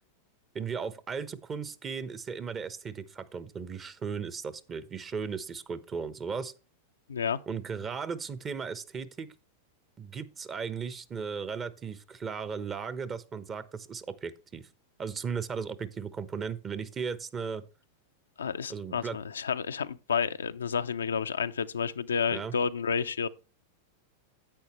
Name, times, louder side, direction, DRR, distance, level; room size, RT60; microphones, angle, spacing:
voice 1, 0.5-6.5 7.5-9.3 10.0-14.7 15.0-17.6 18.7-19.2 22.3-22.5, right 6 dB, 25° right, 0.9 m, -36 dB
voice 2, 7.1-7.4 18.4-23.3, left 6 dB, 85° left, 0.5 m, -30 dB
10.5 x 8.4 x 3.1 m
hypercardioid pair, 100°, 0 cm